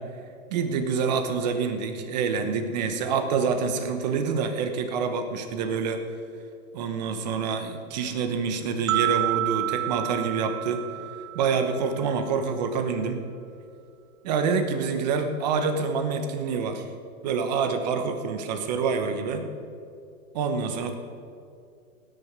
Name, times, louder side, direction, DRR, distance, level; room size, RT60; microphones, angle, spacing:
voice 1, 0.5-6.0 6.7-10.8 11.3-13.2 14.2-16.9 17.2-19.5 20.3-20.9, right 5 dB, 30° right, 7 dB, 1.1 m, -27 dB
sound 1, 8.9-12.0, right 19 dB, 65° right, 0.5 m, -29 dB
17.5 x 10.0 x 5.2 m, 2.5 s
hypercardioid pair, 170°, 42 cm